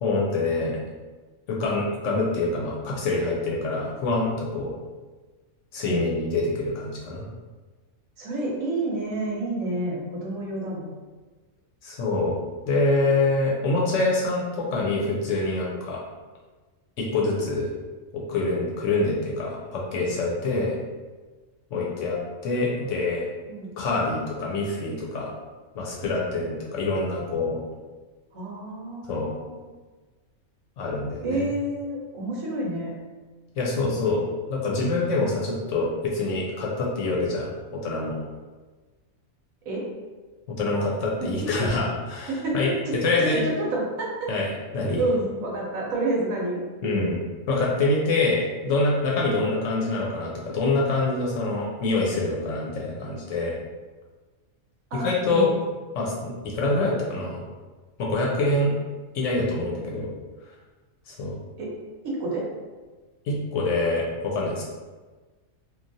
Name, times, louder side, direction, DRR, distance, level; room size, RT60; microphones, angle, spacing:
voice 1, 0.0-0.8 1.5-4.7 5.7-7.3 11.8-12.4 12.7-16.0 17.0-17.7 18.1-20.8 21.7-23.2 23.8-25.3 25.7-27.6 29.1-29.3 30.8-31.5 33.6-34.2 34.5-37.5 37.8-38.2 40.6-43.4 44.3-44.5 44.7-45.0 46.8-47.2 47.5-53.5 54.9-55.5 55.9-57.4 58.0-58.7 59.1-60.1 61.1-61.4 63.3-64.6, left 2 dB, 70° left, -3 dB, 0.8 m, -25 dB
voice 2, 8.2-10.9 23.5-23.7 28.3-29.7 31.2-32.9 39.7-39.9 41.2-41.3 41.6-41.7 42.3-42.6 42.9-44.3 45.0-46.6 54.9-55.5 61.6-61.7 62.0-62.5, right 2 dB, 70° right, -4 dB, 1.0 m, -29 dB
3.1 x 2.3 x 2.6 m, 1.3 s
omnidirectional pair, 1.5 m